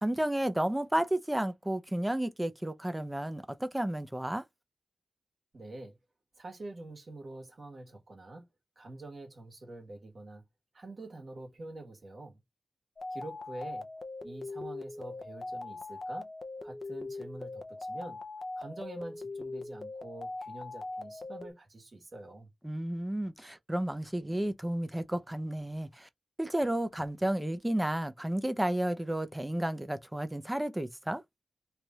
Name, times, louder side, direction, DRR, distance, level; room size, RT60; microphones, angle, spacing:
voice 1, 0.0-4.4 22.6-26.1 26.4-31.2, right 1 dB, 10° right, 0.7 m, -32 dB
voice 2, 5.5-6.0 6.4-8.4 8.7-10.4 10.7-12.4 13.1-13.9 14.2-16.3 16.6-18.2 18.6-22.5, right 2 dB, 60° right, 1.5 m, -46 dB
sound 1, 13.0-21.5, left 2 dB, 50° left, 0.6 m, -41 dB
3.2 x 2.5 x 4.2 m
wide cardioid pair, 75°, 0 cm